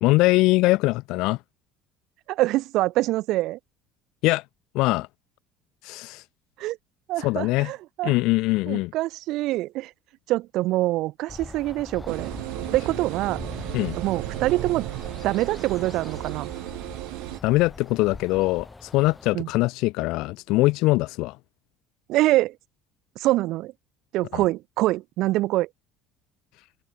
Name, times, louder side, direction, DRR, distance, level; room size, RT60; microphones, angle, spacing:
voice 1, 0.0-1.4 4.2-4.4 4.7-5.1 5.8-6.2 7.2-7.7 8.0-8.9 13.7-14.0 17.4-21.4 24.3-24.4, left 21 dB, 70° left, 0.6 m, -22 dB
voice 2, 2.3-3.6 6.6-6.8 7.1-8.1 8.7-9.9 10.3-12.3 12.7-13.4 14.0-14.9 15.2-16.5 19.3-19.5 22.1-22.5 23.2-23.7 24.1-25.7, right 17 dB, 60° right, 0.9 m, -25 dB
sound 1, 11.3-19.3, left 3 dB, 10° left, 1.2 m, -41 dB
sound 2, 12.1-17.4, right 34 dB, 90° right, 1.2 m, -34 dB
open air
cardioid pair, 150°, 0 cm